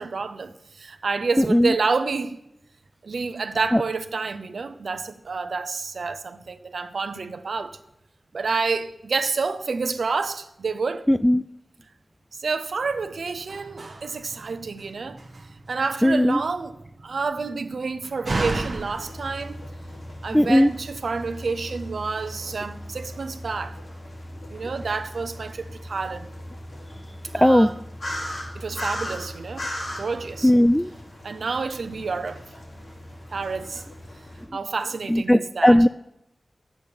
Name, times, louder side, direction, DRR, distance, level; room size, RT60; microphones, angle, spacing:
voice 1, 0.0-2.4 3.0-7.8 8.3-11.1 12.3-15.2 15.7-19.6 20.2-23.8 24.5-26.3 27.2-27.8 28.5-30.5 31.2-32.5 33.3-33.8 34.5-35.9, right 4 dB, 80° right, 0.7 m, -29 dB
voice 2, 11.1-11.4 16.0-16.4 20.3-20.7 27.4-27.7 30.4-30.9 35.1-35.9, equal, 5° left, 0.3 m, -17 dB
Slam, 12.8-20.4, right 2 dB, 65° right, 1.1 m, -36 dB
sound 1, 18.2-34.4, left 1 dB, 75° left, 4.7 m, -38 dB
10.5 x 8.6 x 6.9 m
cardioid pair, 40°, 0 cm